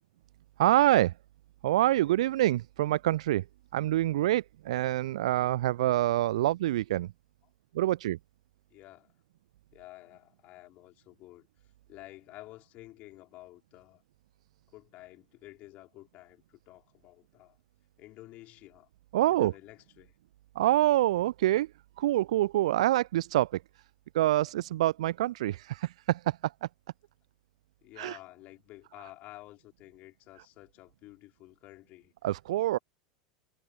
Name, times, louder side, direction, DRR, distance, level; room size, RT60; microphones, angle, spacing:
voice 1, 0.6-1.1 1.6-3.4 3.7-7.1 7.7-8.2 19.1-19.5 20.6-21.7 22.0-23.6 24.1-26.5 28.0-28.2 32.2-32.8, right 14 dB, 60° right, 0.4 m, -26 dB
voice 2, 8.7-9.1 9.7-11.5 11.9-14.0 14.7-17.6 18.0-18.9 19.3-20.1 27.8-32.1 32.7-32.8, left 17 dB, 40° left, 4.5 m, -51 dB
figure-of-eight pair, 85°, 4 cm